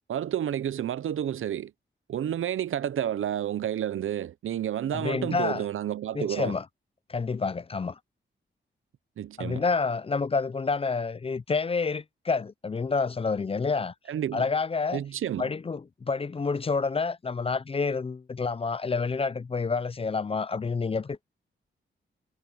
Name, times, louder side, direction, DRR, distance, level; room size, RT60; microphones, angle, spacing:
voice 1, 0.1-1.7 2.1-6.5 9.2-9.6 14.1-14.5 14.9-15.5, right 10 dB, 85° right, 0.6 m, -30 dB
voice 2, 4.9-5.6 6.1-6.6 7.1-8.0 9.4-13.9 14.3-15.0 15.4-21.2, left 4 dB, 30° left, 0.4 m, -28 dB
wide cardioid pair, 95°, 20 cm